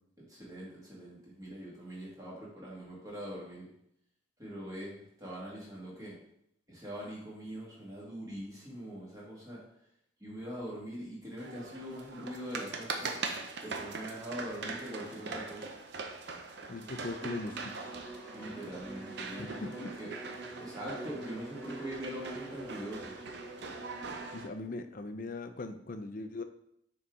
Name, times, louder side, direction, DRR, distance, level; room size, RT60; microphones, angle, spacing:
voice 1, 0.3-3.7 4.4-6.1 6.7-9.6 10.2-13.1 13.6-15.7 18.3-20.1 20.6-23.2, equal, 20° right, -5 dB, 1.8 m, -42 dB
sound 1, 11.4-24.5, right 4 dB, 60° right, 0.6 m, -42 dB
voice 2, 16.7-18.0 19.4-19.9 24.3-26.4, left 3 dB, 45° left, 8 dB, 0.5 m, -40 dB
Bowed string instrument, 17.1-24.5, right 2 dB, 5° left, 1.5 m, -46 dB
6.7 x 3.9 x 3.6 m, 0.74 s
head